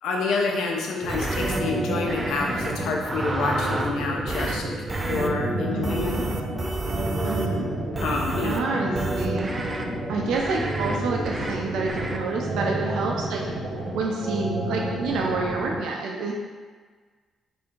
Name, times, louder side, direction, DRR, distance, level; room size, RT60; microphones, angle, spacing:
voice 1, 0.0-4.6 5.1-6.2 8.0-8.6, left 3 dB, 80° left, 0 dB, 0.7 m, -28 dB
sound 1, 1.0-15.8, right 1 dB, 50° right, 1.4 m, -30 dB
sound 2, 1.1-1.6 2.1-2.7 3.0-3.9 4.3-4.6 4.9-5.3 5.8-7.5 7.9-8.6 8.9-9.8 10.3-11.0 11.3-11.5 11.9-12.2, right 2 dB, 25° right, 0.4 m, -31 dB
voice 2, 5.7-6.2 7.2-7.7 8.4-9.5 10.1-13.4 13.9-16.3, right 3 dB, 85° right, -1 dB, 0.5 m, -28 dB
3.5 x 2.6 x 4.4 m, 1.5 s
cardioid pair, 90°, 0 cm